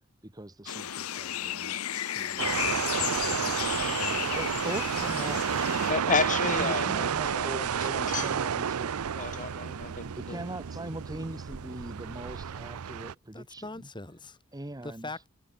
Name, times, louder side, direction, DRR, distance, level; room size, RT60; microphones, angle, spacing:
voice 1, 0.2-1.8 2.1-2.6 4.3-5.5 6.5-9.1 10.1-13.9 14.5-15.1, right 1 dB, 20° right, 1.3 m, -41 dB
sound 1, 0.7-5.9, left 12 dB, 75° left, 0.8 m, -33 dB
voice 2, 1.9-2.3 5.8-8.3 9.2-10.4, left 5 dB, 35° left, 2.7 m, -32 dB
sound 2, 2.4-13.1, right 7 dB, 85° right, 0.5 m, -31 dB
voice 3, 3.2-4.8 13.3-14.4 14.8-15.3, left 2 dB, 20° left, 3.9 m, -43 dB
head